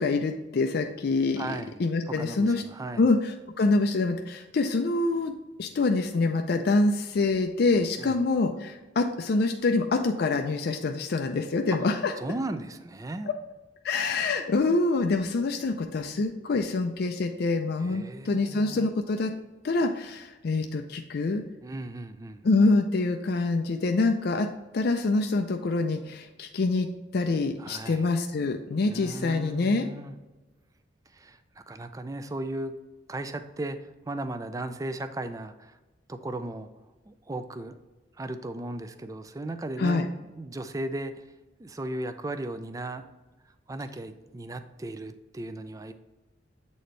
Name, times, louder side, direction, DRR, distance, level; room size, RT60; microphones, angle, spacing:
voice 1, 0.0-2.6 3.0-12.1 13.8-19.3 19.6-21.4 22.4-24.5 24.7-26.9 27.1-29.9 39.8-40.1, left 3 dB, 55° left, 5 dB, 0.4 m, -26 dB
voice 2, 1.4-1.8 2.1-3.1 8.0-8.2 12.2-13.3 17.8-18.9 21.6-22.5 27.6-28.1 28.9-30.1 31.1-32.7 33.1-35.8 36.1-36.7 37.1-37.8 38.2-41.2 41.6-43.1 43.7-45.9, right 2 dB, 20° right, 10 dB, 0.4 m, -36 dB
7.9 x 4.2 x 3.2 m, 1.1 s
head